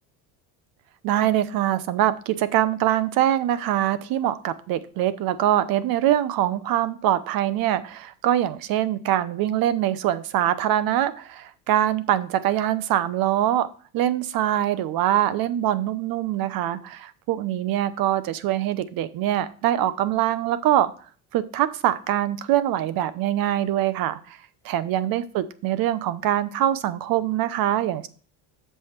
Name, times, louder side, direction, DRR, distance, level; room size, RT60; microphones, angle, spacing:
voice 1, 1.0-13.7 13.9-20.9 21.3-24.2 24.6-28.1, right 12 dB, 55° right, 15 dB, 0.8 m, -23 dB
7.6 x 5.7 x 4.5 m, 0.41 s
supercardioid pair, 105°, 42 cm